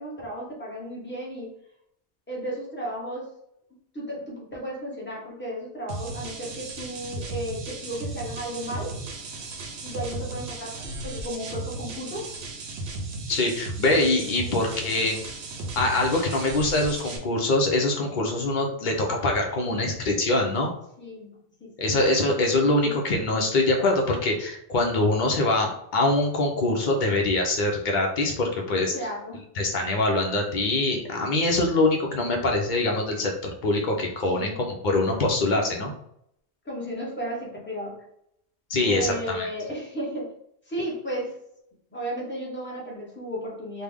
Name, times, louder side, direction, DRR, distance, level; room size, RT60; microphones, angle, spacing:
voice 1, 0.0-1.5 2.3-3.3 3.9-8.9 9.8-12.4 21.0-21.3 21.6-21.7 28.9-29.4 34.3-34.6 36.6-38.0 38.8-40.3 40.7-41.3 41.9-43.8, equal, 10° left, -4 dB, 0.9 m, -34 dB
sound 1, 5.9-17.2, right 3 dB, 80° right, 0.9 m, -36 dB
voice 2, 13.3-15.2 15.8-20.7 21.8-29.0 29.6-34.5 34.8-35.9 38.7-39.5, left 2 dB, 50° left, 1 dB, 0.7 m, -24 dB
3.2 x 2.1 x 3.5 m, 0.73 s
omnidirectional pair, 1.1 m